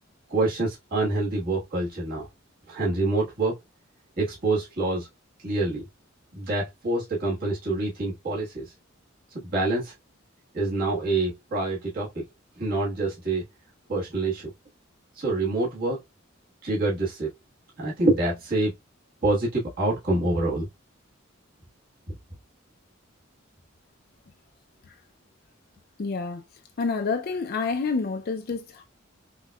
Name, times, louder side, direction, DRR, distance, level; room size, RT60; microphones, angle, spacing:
voice 1, 0.3-2.3 2.7-3.6 4.2-5.1 5.4-5.9 6.3-8.7 9.3-9.9 10.5-12.2 12.6-13.4 13.9-14.5 15.1-16.0 16.6-17.3 17.8-18.7 19.2-20.7, right 2 dB, 50° right, 1.4 m, -26 dB
voice 2, 26.0-26.4 26.8-28.8, left 4 dB, 50° left, 0.4 m, -28 dB
5.3 x 2.2 x 2.2 m
head